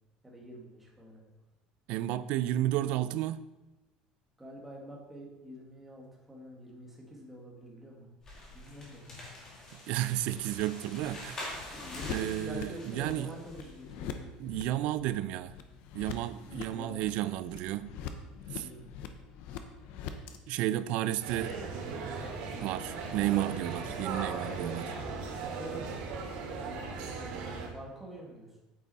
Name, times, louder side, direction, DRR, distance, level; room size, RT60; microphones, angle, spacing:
voice 1, 0.2-1.3 4.4-8.1 8.5-9.2 11.7-14.3 16.7-17.0 18.6-18.9 25.5-26.0 26.5-28.5, right 1 dB, 5° right, 1.8 m, -47 dB
voice 2, 1.9-3.5 9.9-11.5 12.1-13.3 14.4-15.5 15.9-17.9 18.5-18.7 20.5-21.6 22.6-24.9, right 13 dB, 55° right, 0.4 m, -32 dB
sound 1, 8.2-13.8, left 1 dB, 20° left, 2.3 m, -45 dB
sound 2, 8.3-20.4, left 7 dB, 60° left, 0.9 m, -45 dB
sound 3, 21.2-27.7, right 4 dB, 70° right, 2.5 m, -37 dB
8.9 x 8.6 x 4.2 m
cardioid pair, 175°, 2 cm